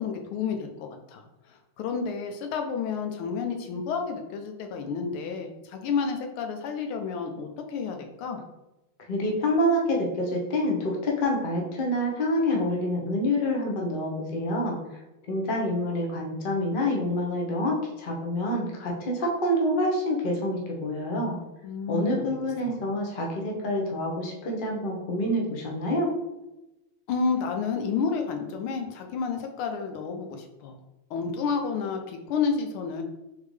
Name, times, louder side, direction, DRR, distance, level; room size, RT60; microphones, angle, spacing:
voice 1, 0.0-8.4 21.6-22.4 22.6-22.7 27.1-30.8 31.1-33.0, left 5 dB, 85° left, 5 dB, 1.5 m, -30 dB
voice 2, 9.1-14.8 15.3-21.4 21.9-26.1, left 1 dB, 65° left, -1 dB, 0.5 m, -27 dB
3.8 x 3.7 x 3.2 m, 0.98 s
omnidirectional pair, 2.3 m